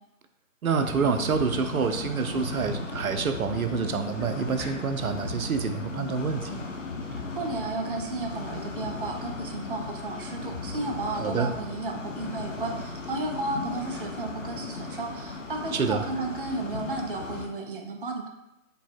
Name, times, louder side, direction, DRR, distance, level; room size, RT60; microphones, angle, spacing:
voice 1, 0.6-6.6 11.2-11.5 15.7-16.0, right 5 dB, 85° right, 8 dB, 0.6 m, -27 dB
sound 1, 0.8-17.5, left 3 dB, 60° left, 0.9 m, -36 dB
sound 2, 4.1-5.0, equal, 10° right, 0.7 m, -45 dB
voice 2, 7.1-18.3, right 2 dB, 40° right, 2 dB, 0.5 m, -33 dB
5.1 x 2.2 x 4.4 m, 0.91 s
figure-of-eight pair, 160°, 41 cm